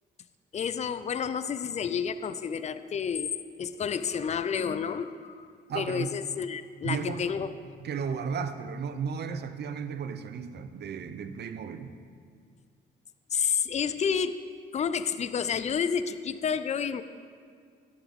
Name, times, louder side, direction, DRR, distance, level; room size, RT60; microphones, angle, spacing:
voice 1, 0.5-3.3 3.6-7.6 13.3-14.4 14.7-17.0, left 7 dB, 35° left, 13 dB, 0.5 m, -30 dB
voice 2, 5.7-6.1 6.8-7.2 7.8-11.9, right 6 dB, 55° right, 10 dB, 0.7 m, -34 dB
12.5 x 10.5 x 3.6 m, 2.1 s
cardioid pair, 90°, 20 cm